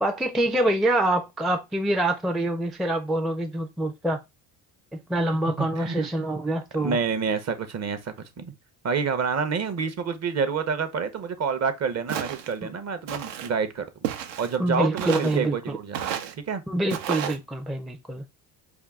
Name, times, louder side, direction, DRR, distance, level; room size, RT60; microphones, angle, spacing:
voice 1, 0.0-4.2 4.9-7.0 12.6-12.7 14.6-15.8 16.7-18.3, right 1 dB, ahead, 0.4 m, -25 dB
voice 2, 5.6-6.1 6.8-8.5 8.8-13.9 14.4-16.2 16.5-16.6, right 6 dB, 35° right, 0.7 m, -28 dB
Walk footsteps, 12.1-12.5 13.1-13.5 14.0-14.6 15.0-15.4 15.9-16.3 16.9-17.4, right 10 dB, 80° right, 0.7 m, -31 dB
4.5 x 2.2 x 3.5 m
supercardioid pair, 85°, 43 cm